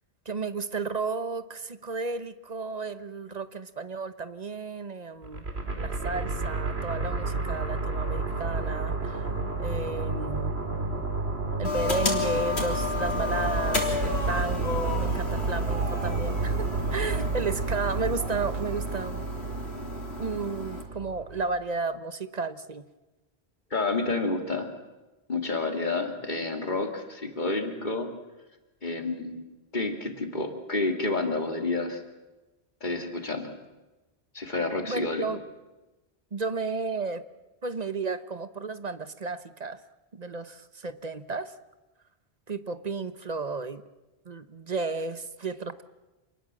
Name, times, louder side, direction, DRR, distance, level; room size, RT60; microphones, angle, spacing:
voice 1, 0.2-5.4 5.8-9.2 9.6-10.5 11.6-19.2 20.2-22.8 34.8-35.4 36.3-37.2 37.6-39.8 40.1-41.5 42.5-43.8 44.2-45.8, right 4 dB, 40° right, 12 dB, 1.1 m, -33 dB
sound 1, 5.2-21.4, right 3 dB, 80° right, 2.9 m, -31 dB
sound 2, 11.6-20.8, left 4 dB, 85° left, 3.8 m, -33 dB
voice 2, 23.7-24.7 25.3-28.1 28.8-32.0 32.8-33.5 34.3-35.3, left 3 dB, 45° left, 4 dB, 2.7 m, -29 dB
27.0 x 19.5 x 7.6 m, 1.1 s
omnidirectional pair, 1.1 m